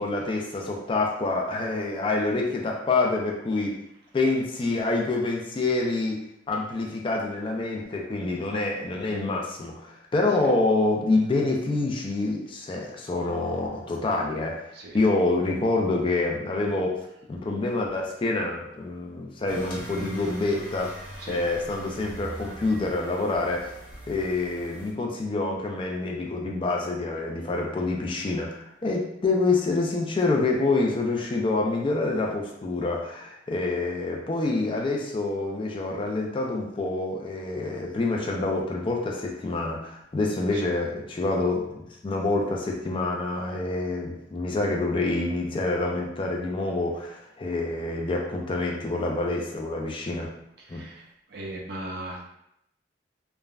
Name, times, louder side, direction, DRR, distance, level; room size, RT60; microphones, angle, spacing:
voice 1, 0.0-3.7 4.1-6.2 6.5-14.7 14.9-17.0 17.3-21.0 21.3-23.7 24.1-50.3 50.7-50.8, left 2 dB, 30° left, 0 dB, 0.3 m, -27 dB
sound 1, 19.5-24.9, equal, 50° left, 0.7 m, -42 dB
voice 2, 50.7-51.0 51.3-52.3, right 1 dB, 60° right, -1 dB, 0.5 m, -37 dB
3.3 x 2.1 x 2.4 m, 0.78 s
head